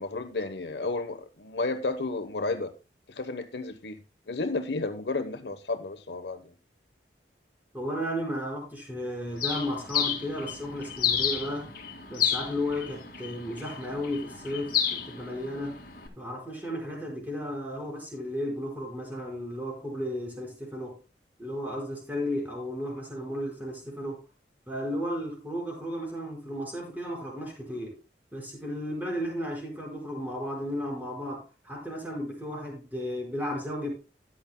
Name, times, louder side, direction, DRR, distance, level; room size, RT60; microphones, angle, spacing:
voice 1, 0.0-2.7 3.1-4.0 4.3-6.5, left 3 dB, 70° left, 1.0 m, -32 dB
voice 2, 7.7-11.7 12.1-15.8 16.2-21.0 21.4-24.2 24.7-28.0 28.3-33.9, equal, 10° right, 4.9 m, -34 dB
Bird, 9.4-16.1, left 8 dB, 50° left, 2.2 m, -31 dB
14.0 x 10.5 x 2.2 m
head